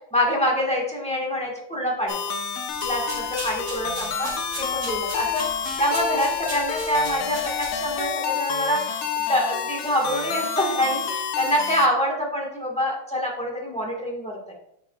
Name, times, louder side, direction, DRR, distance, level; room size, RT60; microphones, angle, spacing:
voice 1, 0.1-2.2 2.8-4.3 4.6-5.5 5.8-8.8 9.3-14.5, equal, 5° left, -2 dB, 0.9 m, -25 dB
sound 1, 2.1-11.9, left 7 dB, 85° left, 0.7 m, -29 dB
sound 2, 2.7-8.1, right 2 dB, 50° right, 2.7 m, -38 dB
7.8 x 6.0 x 2.3 m, 0.74 s
omnidirectional pair, 2.3 m